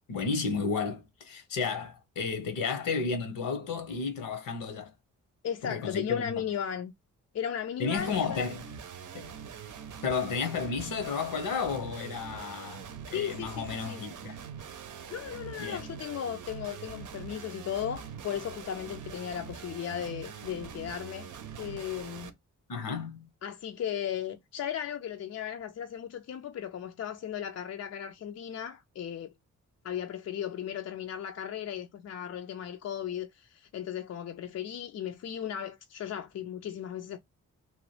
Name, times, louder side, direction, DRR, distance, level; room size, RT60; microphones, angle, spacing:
voice 1, 0.1-4.9 5.6-6.4 7.8-8.6 9.1-9.3 10.0-14.4 15.6-15.8 22.7-23.3, left 5 dB, 80° left, 0.9 m, -32 dB
voice 2, 5.4-6.9 7.3-8.5 13.1-14.0 15.1-21.3 21.6-22.3 23.4-29.3 29.8-37.2, left 9 dB, 50° left, 0.4 m, -36 dB
sound 1, 8.0-22.3, right 7 dB, 65° right, 0.6 m, -44 dB
3.0 x 2.2 x 3.1 m
cardioid pair, 55°, 33 cm